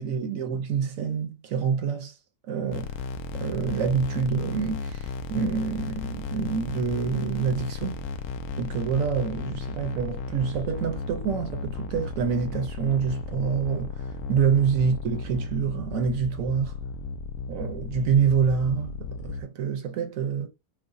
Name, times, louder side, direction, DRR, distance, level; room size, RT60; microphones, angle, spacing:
voice 1, 0.0-2.1 2.5-2.9 3.3-8.0 8.6-16.7 17.5-20.5, right 6 dB, 65° right, 0.9 m, -27 dB
sound 1, 2.7-19.4, left 4 dB, 70° left, 0.9 m, -35 dB
4.7 x 2.1 x 2.5 m
omnidirectional pair, 1.9 m